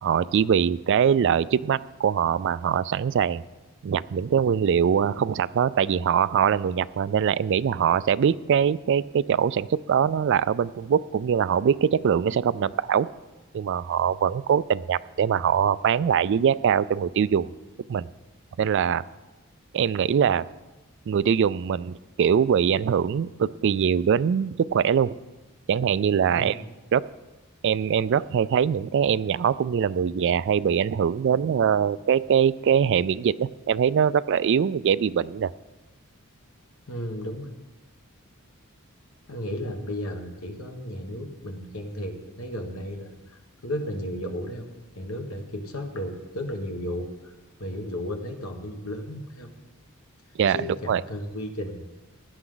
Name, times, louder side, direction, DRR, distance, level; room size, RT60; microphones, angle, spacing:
voice 1, 0.0-3.4 3.8-13.1 13.5-17.5 17.9-18.1 18.6-19.0 19.7-20.4 21.1-25.2 25.7-26.6 26.9-27.1 27.6-35.5 50.4-50.6 50.9-51.0, right 7 dB, 55° right, 18 dB, 0.3 m, -22 dB
voice 2, 36.9-37.5 39.3-44.6 44.9-49.5 50.5-51.9, equal, 70° left, 4 dB, 1.5 m, -34 dB
16.5 x 11.0 x 3.9 m, 1.1 s
head